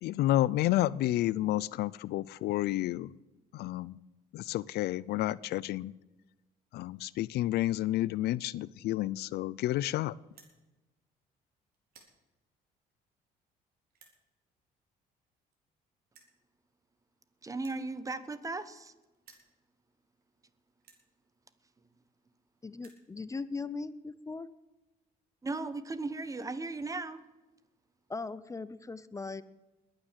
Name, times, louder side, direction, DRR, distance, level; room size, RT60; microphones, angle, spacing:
voice 1, 0.0-3.1 3.5-4.0 4.3-5.9 6.7-10.1, left 15 dB, 75° left, 21 dB, 0.5 m, -30 dB
sound 1, 10.3-10.6 11.2-11.4 11.7-12.2 12.9-13.0 13.9-14.2 15.2-15.3 15.5-15.6 16.1-16.4 17.5-18.9 19.1-19.5 20.2-20.3 20.8-21.1 22.0-22.1 22.3-22.4 22.6-23.1, right 6 dB, 60° right, 4.3 m, -60 dB
voice 2, 17.4-18.9 25.4-27.2, right 3 dB, 20° right, 14 dB, 1.2 m, -36 dB
voice 3, 22.6-24.5 28.1-29.4, left 4 dB, 20° left, 16 dB, 0.7 m, -39 dB
21.5 x 9.0 x 7.5 m, 1.1 s
cardioid pair, 110°, 17 cm